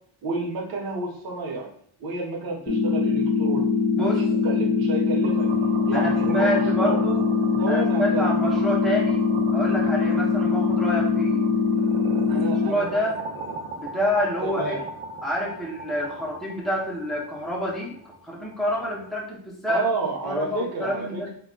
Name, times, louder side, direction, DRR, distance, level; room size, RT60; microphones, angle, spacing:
voice 1, 0.2-1.7 2.0-3.7 4.0-5.5 5.9-7.0 7.6-8.6 12.3-12.9 14.4-14.8 19.7-21.3, right 3 dB, 50° right, -1 dB, 0.8 m, -30 dB
sound 1, 2.7-12.7, left 5 dB, 35° left, 0.8 m, -22 dB
sound 2, 5.2-19.2, right 4 dB, 90° right, 0.6 m, -38 dB
voice 2, 5.9-7.2 7.7-9.2 9.5-11.5 12.3-13.2 13.7-14.8 15.2-18.0 18.2-19.8 20.2-21.3, equal, ahead, -4 dB, 0.4 m, -27 dB
2.2 x 2.1 x 3.7 m, 0.64 s
wide cardioid pair, 180°, 48 cm